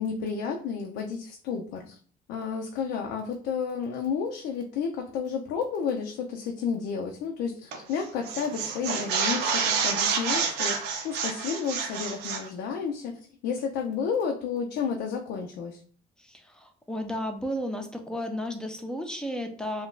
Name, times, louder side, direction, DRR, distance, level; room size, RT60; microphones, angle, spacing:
voice 1, 0.0-1.9 2.3-15.8, left 6 dB, 80° left, 2 dB, 0.5 m, -31 dB
sound 1, 7.7-8.0 8.2-12.5, right 6 dB, 90° right, 0.6 m, -28 dB
voice 2, 16.2-19.9, equal, 5° left, 5 dB, 0.5 m, -33 dB
2.5 x 2.3 x 3.7 m, 0.43 s
cardioid pair, 110°, 17 cm